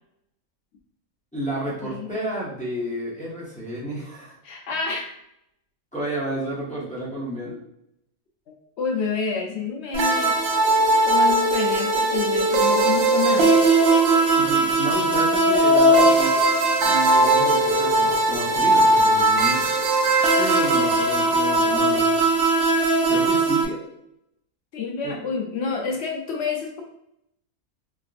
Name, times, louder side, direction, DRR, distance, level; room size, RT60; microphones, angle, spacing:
voice 1, 1.3-4.4 5.9-7.6 14.3-16.5 16.8-19.7 20.4-22.1 23.1-23.8 25.0-25.2, right 1 dB, 10° left, -6 dB, 0.5 m, -31 dB
voice 2, 4.4-5.1 8.5-10.4 11.1-13.6 24.7-26.8, left 5 dB, 65° left, 1 dB, 0.7 m, -28 dB
sound 1, 9.9-23.6, right 2 dB, 65° right, 0.8 m, -19 dB
3.4 x 2.5 x 2.4 m, 0.79 s
omnidirectional pair, 1.5 m